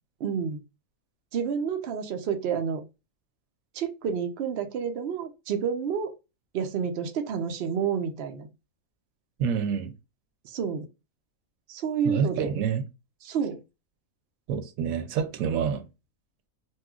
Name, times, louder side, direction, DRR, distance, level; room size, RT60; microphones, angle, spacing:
voice 1, 0.2-0.6 1.3-2.8 3.7-6.1 6.5-8.5 10.4-10.9 11.7-12.5 13.2-13.6, right 7 dB, 60° right, 0.7 m, -29 dB
voice 2, 9.4-9.9 12.0-12.8 14.5-15.9, right 7 dB, 90° right, 1.0 m, -27 dB
4.2 x 2.3 x 2.3 m
omnidirectional pair, 1.4 m